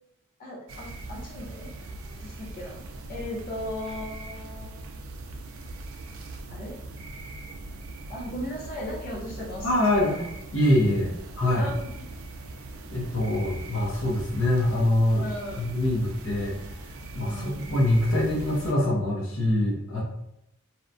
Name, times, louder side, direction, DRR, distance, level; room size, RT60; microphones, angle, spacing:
voice 1, 0.4-2.8 3.1-4.7 6.5-6.8 8.1-10.4 11.6-12.0 15.1-15.7 17.3-17.7, left 1 dB, 45° left, -5 dB, 0.8 m, -37 dB
sound 1, 0.7-18.7, right 2 dB, 70° right, 0.4 m, -41 dB
voice 2, 9.6-10.1 10.5-11.7 12.9-15.2 15.6-16.6 17.1-20.0, left 1 dB, 75° left, -4 dB, 0.7 m, -24 dB
2.8 x 2.1 x 2.5 m, 0.82 s
head